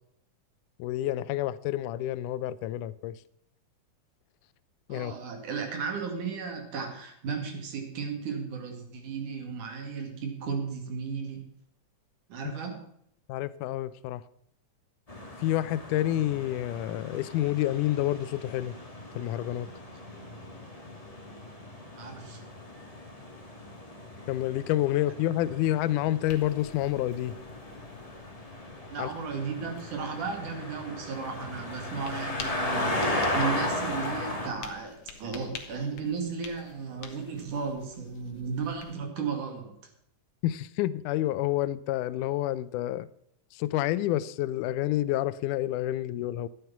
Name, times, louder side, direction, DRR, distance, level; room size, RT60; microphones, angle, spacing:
voice 1, 0.8-3.2 4.9-5.1 13.3-14.2 15.4-18.7 19.2-19.7 24.3-27.3 29.0-29.1 40.4-43.1 43.6-46.5, left 14 dB, 80° left, 2.1 m, -28 dB
voice 2, 4.9-11.5 12.3-12.8 22.0-22.4 28.9-39.8, right 5 dB, 75° right, 3.7 m, -35 dB
sound 1, 15.1-34.5, left 1 dB, 15° left, 2.0 m, -36 dB
sound 2, 26.2-39.0, left 6 dB, 55° left, 2.2 m, -49 dB
12.5 x 9.5 x 5.8 m
omnidirectional pair, 3.6 m